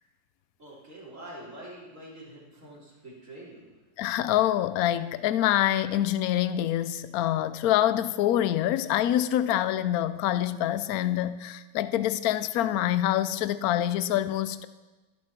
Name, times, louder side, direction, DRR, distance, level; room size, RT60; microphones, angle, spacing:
voice 1, 0.6-3.8, right 1 dB, 45° right, -6 dB, 4.2 m, -45 dB
voice 2, 4.0-14.7, left 12 dB, 70° left, 13 dB, 0.9 m, -26 dB
22.5 x 7.8 x 4.5 m, 1.1 s
omnidirectional pair, 1.9 m